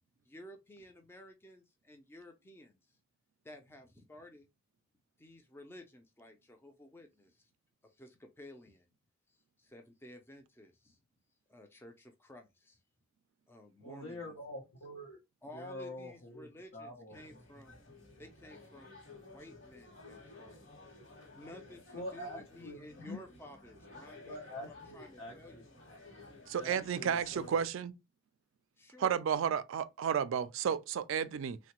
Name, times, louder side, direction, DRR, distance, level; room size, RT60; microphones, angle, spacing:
voice 1, 0.2-3.0 3.4-4.5 5.2-7.5 7.8-8.9 9.6-11.0 11.5-12.8 13.5-14.4 15.4-17.8 18.2-18.9 19.3-20.8 21.4-24.6 24.9-25.6 26.7-26.9 28.8-29.4, left 1 dB, 10° left, 0.3 m, -54 dB
voice 2, 13.8-15.2 15.5-17.2 21.9-23.2 24.2-25.7 26.6-27.6, left 1 dB, 85° left, 0.7 m, -45 dB
sound 1, 17.1-27.7, left 2 dB, 60° left, 1.1 m, -55 dB
voice 3, 26.5-27.9 29.0-31.6, right 8 dB, 70° right, 0.3 m, -32 dB
3.2 x 2.1 x 2.9 m
head